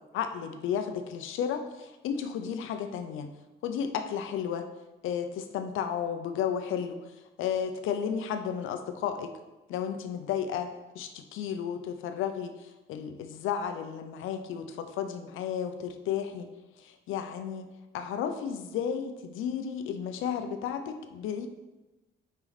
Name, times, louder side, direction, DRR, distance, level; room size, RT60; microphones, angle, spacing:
voice 1, 0.1-3.3 3.6-4.7 5.0-9.3 9.7-10.7 10.9-16.5 16.8-21.5, left 8 dB, 85° left, 8 dB, 0.6 m, -33 dB
5.8 x 5.5 x 4.1 m, 1.1 s
cardioid pair, 90°, 20 cm